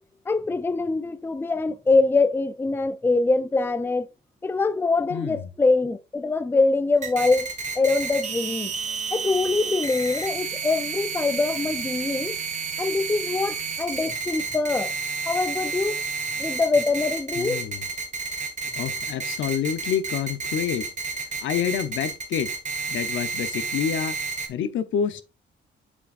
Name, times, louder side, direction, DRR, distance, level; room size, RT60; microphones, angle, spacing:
voice 1, 0.3-4.1 4.4-8.7 9.1-12.4 12.8-14.9 15.3-16.0 16.4-17.6, left 3 dB, 10° left, 0.5 m, -24 dB
voice 2, 5.1-5.5 17.4-17.8 18.8-22.5 22.9-24.2 24.5-25.2, left 8 dB, 75° left, 0.9 m, -28 dB
sound 1, 7.0-24.5, right 5 dB, 40° right, 1.6 m, -31 dB
7.6 x 6.2 x 2.5 m
cardioid pair, 90°, 20 cm